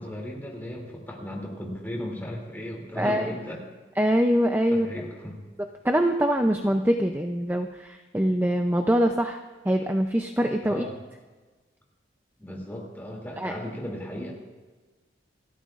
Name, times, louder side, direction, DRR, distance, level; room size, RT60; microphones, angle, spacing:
voice 1, 0.0-3.6 4.7-5.5 10.6-10.9 12.4-14.3, left 1 dB, 10° left, -2 dB, 2.7 m, -36 dB
voice 2, 3.0-3.3 4.0-4.9 5.8-10.9 13.4-13.5, equal, 10° right, 4 dB, 0.5 m, -24 dB
28.0 x 13.5 x 2.5 m, 1.3 s
head